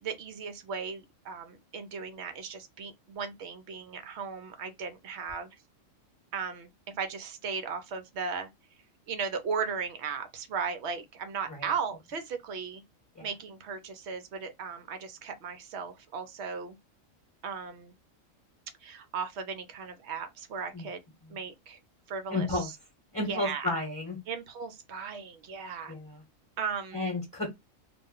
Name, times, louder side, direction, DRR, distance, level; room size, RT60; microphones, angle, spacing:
voice 1, 0.0-5.5 6.3-8.5 9.1-12.8 13.2-16.7 17.4-17.9 18.8-21.0 21.3-21.8 22.1-22.7 23.3-23.8 24.3-25.9 26.6-27.1, right 6 dB, 65° right, 0.8 m, -36 dB
voice 2, 22.3-22.7 23.1-24.2 25.9-26.2 26.9-27.5, left 2 dB, 15° left, 0.9 m, -32 dB
2.4 x 2.1 x 3.5 m
omnidirectional pair, 1.4 m